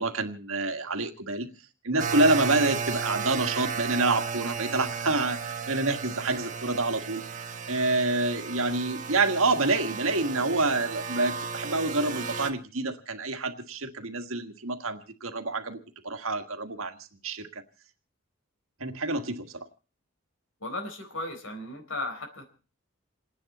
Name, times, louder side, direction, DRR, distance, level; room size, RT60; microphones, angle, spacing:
voice 1, 0.0-1.5 1.8-7.2 7.7-15.8 16.0-17.6 18.8-19.7, right 2 dB, 85° right, 6 dB, 1.7 m, -27 dB
sound 1, 2.0-12.5, right 5 dB, 35° right, 1.3 m, -34 dB
voice 2, 20.6-22.4, left 2 dB, 75° left, 6 dB, 4.1 m, -35 dB
28.5 x 10.0 x 4.2 m, 0.36 s
head